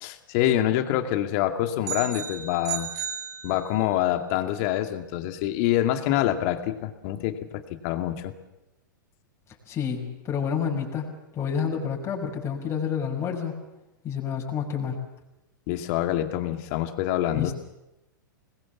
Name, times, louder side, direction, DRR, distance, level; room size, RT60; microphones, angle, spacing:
voice 1, 0.0-2.9 3.4-8.3 15.7-17.5, left 12 dB, 50° left, 7 dB, 2.2 m, -26 dB
sound 1, 1.8-4.0, right 9 dB, 55° right, 3.3 m, -34 dB
voice 2, 9.7-11.1 11.3-13.5 14.0-15.0 17.3-17.5, left 7 dB, 25° left, -1 dB, 6.0 m, -29 dB
26.0 x 20.5 x 7.4 m, 0.95 s
hypercardioid pair, 110°, 11 cm